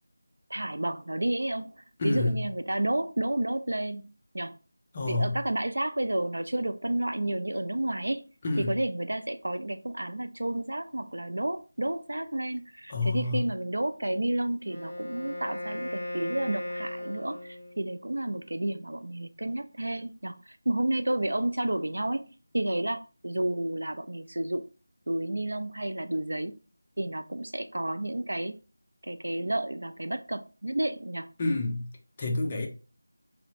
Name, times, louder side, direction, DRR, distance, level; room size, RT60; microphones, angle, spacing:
voice 1, 0.5-4.0 4.3-4.6 5.1-8.3 8.6-22.3 22.5-24.6 25.1-26.5 27.0-28.6 29.0-31.3, right 1 dB, 80° right, 0.4 m, -31 dB
voice 2, 2.0-2.4 4.9-5.4 8.4-8.8 12.9-13.4 31.4-31.9 32.2-32.7, left 2 dB, 20° left, 0.4 m, -28 dB
Wind instrument woodwind instrument, 14.6-17.9, left 1 dB, 45° left, 0.8 m, -37 dB
4.0 x 2.0 x 2.6 m
figure-of-eight pair, 170°, 0 cm